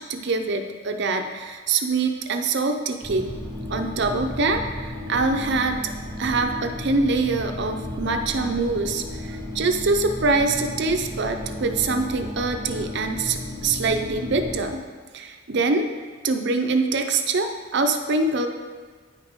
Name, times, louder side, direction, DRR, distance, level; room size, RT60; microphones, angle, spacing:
voice 1, 0.0-3.3 3.7-5.8 6.2-14.8 15.1-15.9 16.2-18.5, right 3 dB, 55° right, 6 dB, 0.5 m, -24 dB
sound 1, 3.0-14.6, left 1 dB, 15° left, 1.2 m, -34 dB
9.5 x 5.0 x 3.6 m, 1.5 s
head